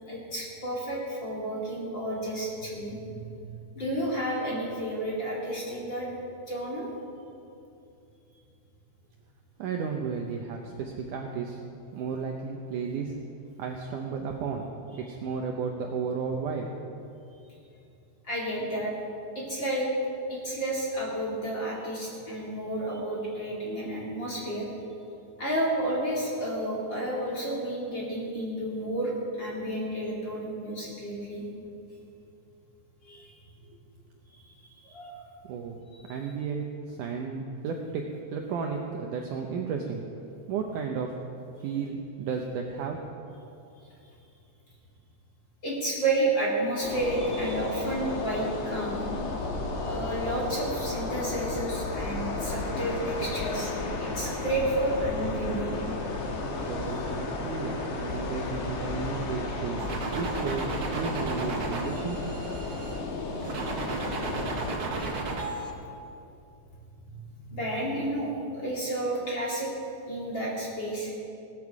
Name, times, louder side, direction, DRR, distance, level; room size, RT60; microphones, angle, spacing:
voice 1, 0.1-3.4 3.7-6.1 6.5-6.9 18.2-18.9 19.3-19.9 20.3-24.7 25.4-29.1 29.4-31.4 33.0-33.3 34.4-35.3 45.6-49.2 49.8-53.7 54.0-55.7 67.1-69.7 70.1-71.1, right 1 dB, 35° left, -4 dB, 2.4 m, -31 dB
voice 2, 9.6-11.6 11.9-13.1 13.6-14.7 15.1-16.7 35.5-35.8 36.1-38.0 38.3-40.0 40.5-41.1 41.6-43.0 56.7-59.8 60.1-60.6 60.9-62.2, right 5 dB, 90° right, 2 dB, 1.8 m, -33 dB
sound 1, 46.8-64.8, left 3 dB, 80° left, 3.8 m, -33 dB
sound 2, 59.8-63.0 63.4-65.7, right 3 dB, 65° right, 1.3 m, -33 dB
18.0 x 12.5 x 4.8 m, 2.7 s
omnidirectional pair, 4.9 m